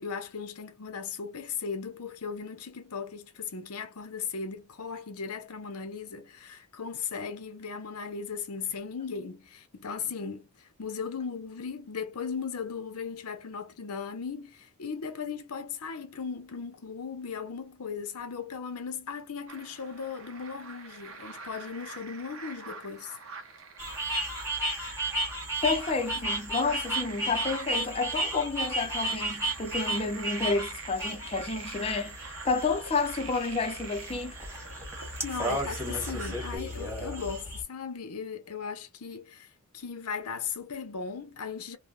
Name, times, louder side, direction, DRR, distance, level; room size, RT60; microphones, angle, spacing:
voice 1, 0.0-23.2 35.2-41.8, left 6 dB, 85° left, 0.7 m, -37 dB
sound 1, 19.5-36.6, right 4 dB, 60° right, 0.9 m, -45 dB
sound 2, 23.8-37.6, right 1 dB, 10° right, 1.3 m, -34 dB
voice 2, 25.6-34.4, left 4 dB, 25° left, 0.5 m, -30 dB
3.2 x 2.2 x 2.3 m
head